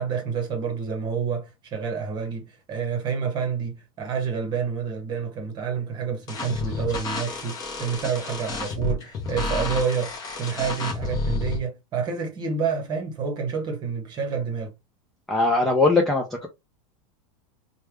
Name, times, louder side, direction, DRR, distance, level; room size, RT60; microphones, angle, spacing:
voice 1, 0.0-14.7, right 6 dB, 25° right, 1.0 m, -28 dB
sound 1, 6.3-11.6, left 3 dB, 20° left, 0.8 m, -30 dB
voice 2, 15.3-16.5, left 3 dB, ahead, 0.3 m, -20 dB
3.3 x 2.2 x 3.2 m
supercardioid pair, 160°, 17 cm